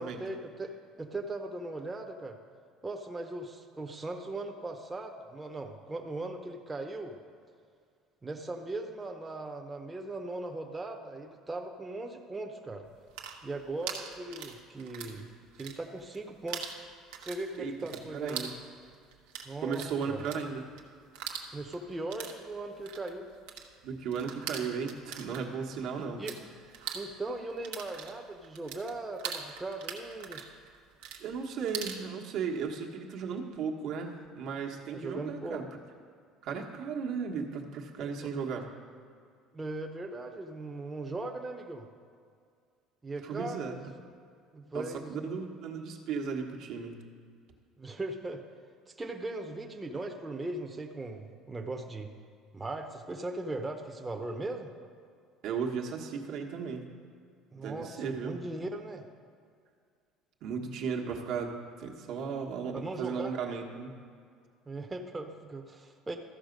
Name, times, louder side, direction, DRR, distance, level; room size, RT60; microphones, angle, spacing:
voice 1, 0.0-2.4 2.8-7.2 8.2-12.9 13.4-15.3 15.6-16.8 17.2-18.5 19.5-20.2 21.5-23.3 26.0-26.4 26.9-30.4 34.9-35.6 38.0-38.1 39.5-41.9 43.0-43.8 44.5-45.3 47.8-48.4 49.0-52.1 52.5-54.7 57.5-59.0 62.7-63.3 64.7-66.2, right 2 dB, 15° right, 3 dB, 0.8 m, -39 dB
sound 1, 12.9-15.2 15.5-16.2 16.5-26.4 26.7-32.0, right 8 dB, 85° right, 1.0 m, -42 dB
voice 2, 17.6-18.5 19.6-20.6 23.8-26.2 31.2-35.6 36.4-38.7 43.2-43.8 44.7-47.0 55.4-56.9 57.5-58.4 60.4-63.9, right 6 dB, 65° right, 0 dB, 1.3 m, -35 dB
14.0 x 5.6 x 5.2 m, 2.2 s
supercardioid pair, 100°, 0 cm